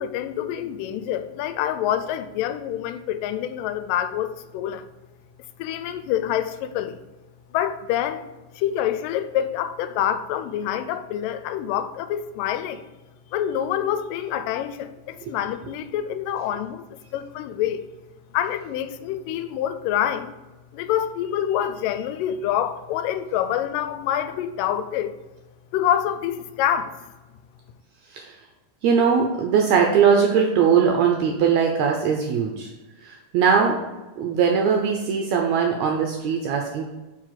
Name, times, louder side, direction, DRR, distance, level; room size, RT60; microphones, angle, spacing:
voice 1, 0.0-4.9 5.6-7.0 7.5-8.2 8.6-12.8 13.3-16.9 17.1-17.9 18.3-20.3 20.7-25.1 25.7-27.0, left 10 dB, 85° left, 11 dB, 2.2 m, -26 dB
voice 2, 28.8-32.7 33.0-33.8 34.2-36.9, right 6 dB, 80° right, 2 dB, 1.6 m, -20 dB
4.9 x 4.7 x 5.7 m, 1.1 s
omnidirectional pair, 3.8 m